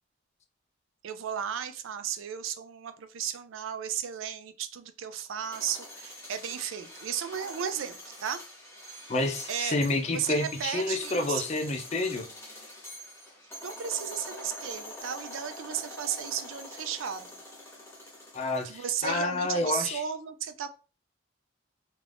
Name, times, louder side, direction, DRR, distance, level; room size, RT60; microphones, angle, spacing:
voice 1, 1.0-8.4 9.5-9.8 10.1-11.4 13.6-17.4 18.6-20.7, right 8 dB, 85° right, 0.4 m, -34 dB
sound 1, 5.3-19.5, equal, 15° left, 0.8 m, -45 dB
voice 2, 9.1-12.3 18.3-20.0, left 2 dB, 35° left, 0.4 m, -29 dB
2.4 x 2.4 x 3.4 m
head